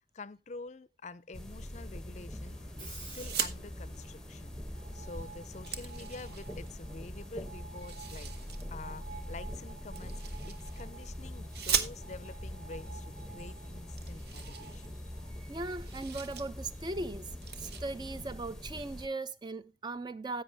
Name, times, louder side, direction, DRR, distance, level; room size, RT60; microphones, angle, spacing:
voice 1, 0.1-8.3 8.7-15.0, left 3 dB, 40° left, 0.5 m, -48 dB
sound 1, 1.3-19.1, left 1 dB, 5° left, 0.8 m, -43 dB
Screech, 2.4-19.0, right 5 dB, 50° right, 3.3 m, -54 dB
sound 2, 3.2-3.6 4.9-5.0 5.3-6.7 7.8-8.6 9.9-10.9 11.5-12.4 13.2-13.3 13.6-13.7 14.0-15.3 15.6-16.4 16.8-17.0 17.4-17.8, right 7 dB, 65° right, 1.0 m, -38 dB
voice 2, 15.5-17.3 17.6-20.4, right 2 dB, 25° right, 0.4 m, -38 dB
10.5 x 8.0 x 3.3 m
head